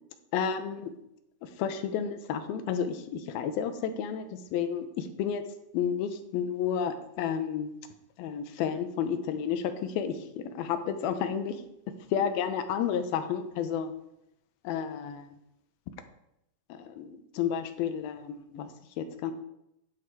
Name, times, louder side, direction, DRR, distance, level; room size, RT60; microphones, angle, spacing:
voice 1, 0.3-0.9 1.4-5.4 5.7-7.8 8.2-11.6 12.1-13.9 14.6-15.3 16.7-19.3, left 8 dB, 85° left, 9 dB, 2.7 m, -31 dB
10.0 x 7.8 x 4.7 m, 0.82 s
omnidirectional pair, 4.2 m